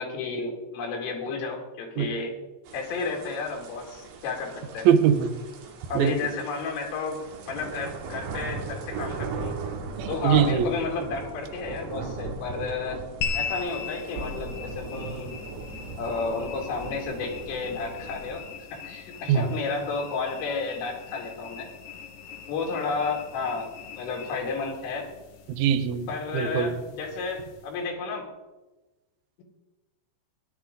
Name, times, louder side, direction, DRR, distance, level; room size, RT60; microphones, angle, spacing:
voice 1, 0.0-2.3 2.7-4.9 5.9-7.2 7.5-9.5 10.1-13.0 13.3-15.3 16.0-18.4 18.7-21.7 22.5-25.1 26.1-28.2, left 4 dB, 90° left, 0 dB, 4.9 m, -32 dB
sound 1, 2.7-18.4, right 4 dB, 65° right, 3.6 m, -38 dB
voice 2, 4.9-5.3 6.0-6.2 10.0-10.7 19.3-19.5 25.5-26.1 26.3-26.7, right 8 dB, 85° right, 7 dB, 2.1 m, -22 dB
sound 2, 13.2-27.8, left 6 dB, 65° left, 3.0 m, -40 dB
17.0 x 11.0 x 3.8 m, 1.1 s
omnidirectional pair, 5.6 m